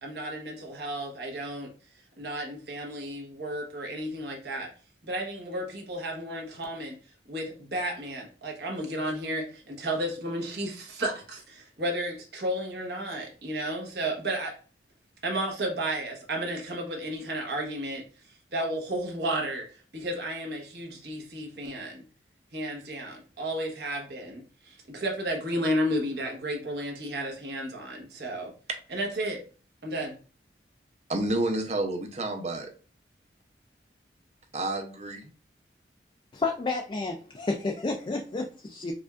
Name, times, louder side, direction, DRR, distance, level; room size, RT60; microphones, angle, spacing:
voice 1, 0.0-1.7 2.2-4.7 5.0-7.0 7.3-14.5 15.2-18.0 18.5-19.7 19.9-22.0 22.5-28.5 28.9-29.4 29.8-30.2, right 1 dB, 65° right, 1.1 m, -32 dB
voice 2, 31.1-32.7 34.5-35.3, right 2 dB, 40° right, 0.7 m, -29 dB
voice 3, 36.3-38.9, left 3 dB, 25° left, 0.3 m, -31 dB
4.8 x 2.4 x 2.4 m
head